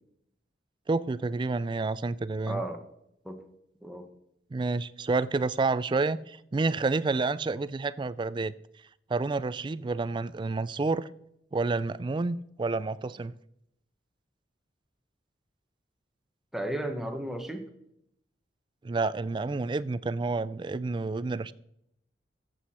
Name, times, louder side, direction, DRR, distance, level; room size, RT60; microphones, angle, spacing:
voice 1, 0.9-2.6 4.5-8.5 9.1-11.1 11.5-13.3 18.8-21.5, right 3 dB, 25° right, 17 dB, 0.3 m, -29 dB
voice 2, 2.5-2.8 3.2-3.4 3.8-4.1 16.5-17.7, right 1 dB, ahead, 3 dB, 1.1 m, -34 dB
14.0 x 7.8 x 4.3 m, 0.78 s
head